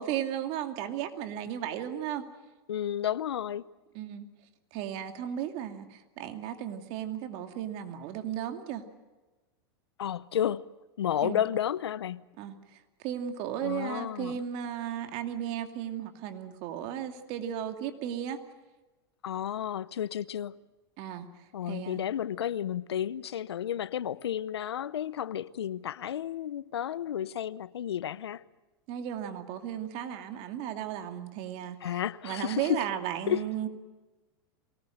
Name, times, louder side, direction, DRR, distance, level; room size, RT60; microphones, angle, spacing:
voice 1, 0.0-2.3 3.9-4.3 4.7-8.9 11.2-11.4 12.4-12.6 13.0-18.4 21.0-21.3 21.7-22.0 28.9-33.7, right 10 dB, 50° right, 2.5 m, -35 dB
voice 2, 2.7-3.6 10.0-10.6 11.0-12.3 13.6-14.4 19.2-20.6 21.5-28.4 31.8-32.8 33.3-33.4, left 10 dB, 90° left, 0.7 m, -32 dB
23.5 x 18.5 x 7.9 m
hypercardioid pair, 110°, 13 cm